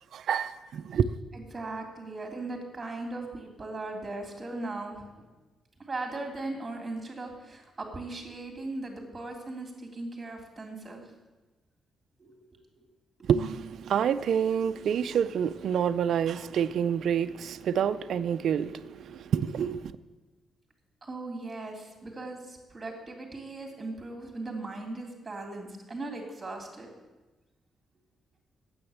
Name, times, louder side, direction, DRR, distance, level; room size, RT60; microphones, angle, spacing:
voice 1, 0.1-1.1 13.3-19.9, right 8 dB, 70° right, 0.4 m, -28 dB
voice 2, 1.3-5.2 5.8-11.1 12.2-12.4 12.7-12.9 21.0-26.9, right 2 dB, 25° right, 2.9 m, -38 dB
9.7 x 7.9 x 7.2 m
cardioid pair, 100°, 0 cm